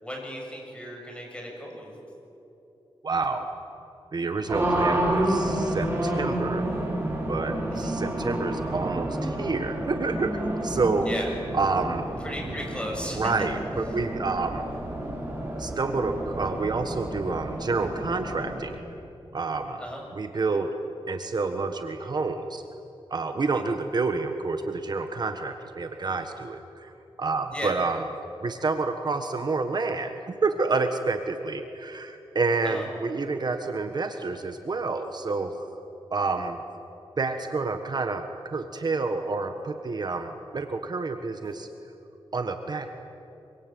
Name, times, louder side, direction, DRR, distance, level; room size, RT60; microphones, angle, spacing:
voice 1, 0.0-1.9 7.7-7.9 11.0-11.3 12.2-13.3 13.9-14.0 19.8-20.0 27.5-27.8 32.6-32.9, equal, 10° left, 0 dB, 7.8 m, -36 dB
voice 2, 3.0-3.5 4.1-6.7 7.3-11.1 11.5-12.1 13.2-14.7 15.6-18.8 19.3-19.8 20.2-20.7 21.1-22.6 23.1-26.9 27.2-28.0 28.4-35.7 36.1-36.6 37.2-38.3 38.5-41.7 42.3-43.0, right 3 dB, 45° right, 6 dB, 1.4 m, -28 dB
Race car auto racing, 4.5-18.6, right 1 dB, 25° right, 7.3 m, -30 dB
26.5 x 24.5 x 9.3 m, 3.0 s
wide cardioid pair, 120°, 10 cm